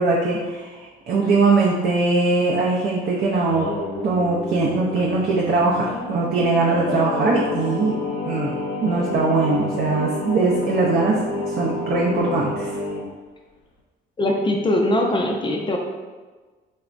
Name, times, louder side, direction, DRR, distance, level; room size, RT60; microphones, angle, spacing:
voice 1, 0.0-3.7 4.0-8.5 8.8-11.2 11.5-12.7, right 3 dB, 50° right, -3 dB, 0.4 m, -21 dB
Singing, 3.3-13.0, left 2 dB, 90° left, 0.5 m, -29 dB
voice 2, 14.2-15.8, left 1 dB, 25° left, 0 dB, 0.4 m, -21 dB
3.2 x 2.0 x 2.4 m, 1.3 s
cardioid pair, 85°, 21 cm